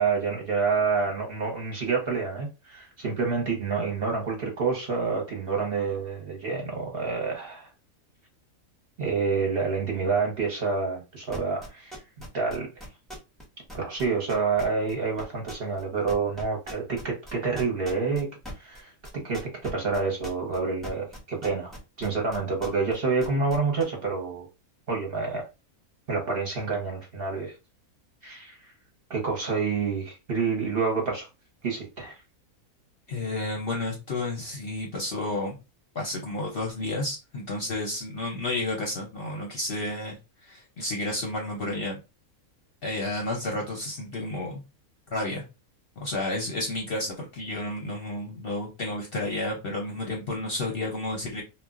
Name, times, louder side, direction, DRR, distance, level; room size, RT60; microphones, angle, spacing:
voice 1, 0.0-7.7 9.0-12.0 12.3-12.9 13.7-18.3 18.5-18.9 19.2-21.7 22.0-24.5 24.9-25.4 26.1-27.5 28.2-28.7 29.1-31.3 31.6-32.2, right 4 dB, 50° right, 0.8 m, -28 dB
sound 1, 11.3-13.4 13.7-14.9 15.2-15.8 16.1-22.9 23.2-23.8, equal, ahead, 0.5 m, -40 dB
voice 2, 33.1-35.6 35.9-42.0 42.8-44.6 45.1-45.4 46.0-51.4, left 2 dB, 55° left, 0.7 m, -31 dB
2.3 x 2.1 x 3.5 m
omnidirectional pair, 1.5 m